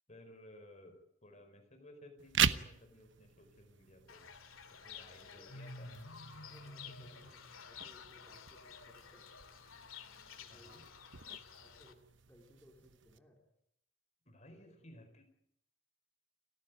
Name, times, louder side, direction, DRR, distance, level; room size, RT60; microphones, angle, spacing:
voice 1, 0.1-4.2 4.7-5.9 6.8-7.1 10.5-10.8 14.2-15.3, left 1 dB, 35° left, 5 dB, 4.8 m, -58 dB
sound 1, 2.2-13.2, right 8 dB, 65° right, 1.0 m, -41 dB
Fowl / Bird, 4.1-11.9, left 5 dB, 85° left, 2.5 m, -51 dB
voice 2, 6.5-9.2 10.4-10.8 11.5-12.0 12.2-13.4 14.5-14.8, equal, 10° left, -1 dB, 3.8 m, -63 dB
29.5 x 14.5 x 9.4 m, 0.74 s
head